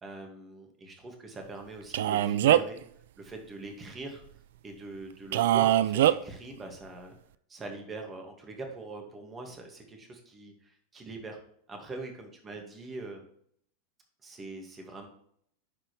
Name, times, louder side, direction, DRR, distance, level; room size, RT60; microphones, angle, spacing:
voice 1, 0.0-2.8 3.2-4.2 4.6-7.1 7.5-11.4 11.7-13.2 14.2-15.1, right 3 dB, 20° right, 3 dB, 2.1 m, -42 dB
Male speech man speaking, 1.9-2.8 5.3-6.2, right 12 dB, 65° right, 0.4 m, -22 dB
9.9 x 4.8 x 3.3 m, 0.65 s
hypercardioid pair, 95°, 0 cm